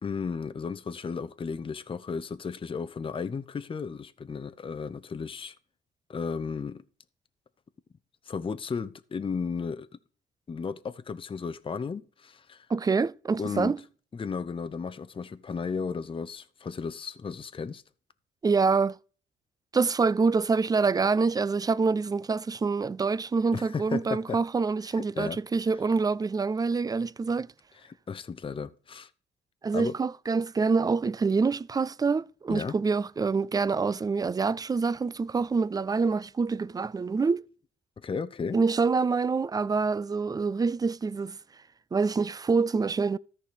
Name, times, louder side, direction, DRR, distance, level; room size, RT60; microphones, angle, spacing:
voice 1, 0.0-5.5 6.1-6.8 8.3-9.9 10.5-12.7 13.4-13.8 14.1-17.8 23.5-24.4 24.9-25.4 27.8-29.1 29.7-30.0 32.5-32.8 38.0-38.6, left 5 dB, 25° left, 0.6 m, -34 dB
voice 2, 12.7-13.8 18.4-19.0 19.7-27.5 29.6-37.4 38.5-41.4 41.9-43.2, right 4 dB, 20° right, 0.3 m, -26 dB
13.5 x 4.9 x 5.0 m
cardioid pair, 90°, 20 cm